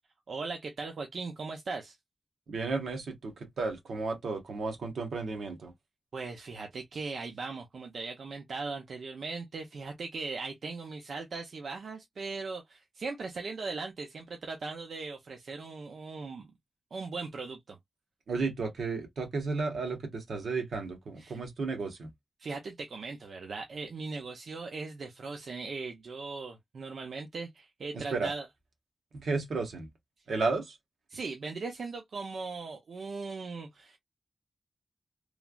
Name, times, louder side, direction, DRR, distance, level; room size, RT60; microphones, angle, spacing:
voice 1, 0.3-2.0 6.1-16.5 16.9-17.8 21.2-21.4 22.4-28.5 31.1-34.0, right 4 dB, 70° right, 0.6 m, -39 dB
voice 2, 2.5-5.7 18.3-22.1 27.9-28.3 29.1-29.9 30.3-30.7, right 3 dB, 90° right, 1.0 m, -33 dB
3.2 x 2.4 x 2.3 m
wide cardioid pair, 115°, 0 cm